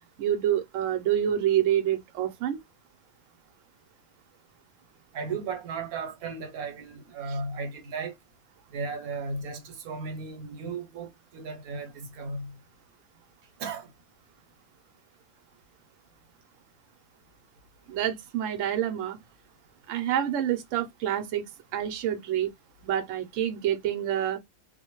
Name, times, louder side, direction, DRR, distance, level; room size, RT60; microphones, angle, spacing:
voice 1, 0.2-2.6 17.9-19.2 19.9-21.4 21.7-22.5 22.8-24.4, right 10 dB, 65° right, 0.9 m, -27 dB
voice 2, 5.1-8.1 8.7-12.5 13.6-13.9, right 4 dB, 85° right, 1.2 m, -35 dB
2.4 x 2.1 x 2.9 m
omnidirectional pair, 1.5 m